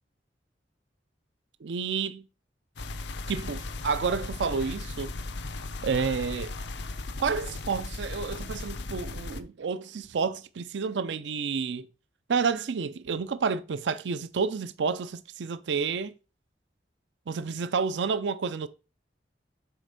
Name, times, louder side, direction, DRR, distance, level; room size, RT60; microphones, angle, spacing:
voice 1, 1.6-2.1 3.3-5.1 5.8-6.5 7.2-11.9 12.3-16.1 17.3-18.7, right 5 dB, 75° right, 0.5 m, -30 dB
sound 1, 2.8-9.4, left 2 dB, 70° left, 0.7 m, -37 dB
7.6 x 4.2 x 5.2 m
head